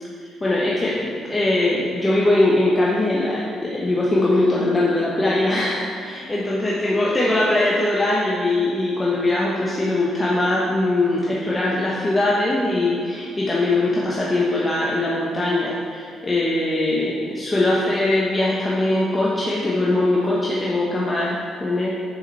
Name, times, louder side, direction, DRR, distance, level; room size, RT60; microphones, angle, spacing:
voice 1, 0.2-21.9, left 2 dB, 25° left, -6 dB, 1.2 m, -21 dB
6.8 x 5.7 x 4.2 m, 2.3 s
hypercardioid pair, 45°, 0 cm